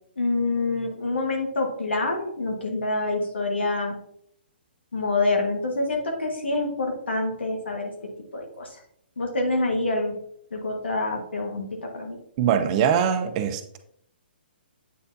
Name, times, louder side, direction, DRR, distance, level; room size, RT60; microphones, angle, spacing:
voice 1, 0.2-4.0 4.9-7.9 8.3-8.8 9.2-10.1 10.5-12.2, left 2 dB, 85° left, 2 dB, 1.6 m, -26 dB
voice 2, 12.4-13.8, right 8 dB, 35° right, 8 dB, 0.6 m, -22 dB
8.3 x 4.2 x 2.7 m, 0.68 s
hypercardioid pair, 135°, 6 cm